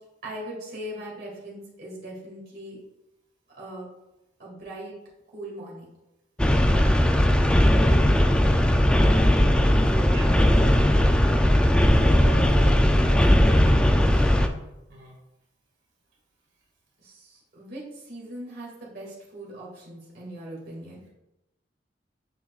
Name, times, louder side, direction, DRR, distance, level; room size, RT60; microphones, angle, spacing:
voice 1, 0.2-2.8 3.5-3.9 4.4-4.9 5.3-5.9 8.4-8.7 9.9-10.3 11.9-14.4 17.0-21.0, right 1 dB, 55° right, -5 dB, 2.1 m, -40 dB
sound 1, 6.4-14.5, left 1 dB, 5° left, 0.3 m, -19 dB
voice 2, 6.7-7.0 9.7-9.8 10.1-10.3 14.9-15.2, right 2 dB, 80° right, -3 dB, 1.9 m, -44 dB
7.3 x 5.9 x 2.4 m, 0.95 s
head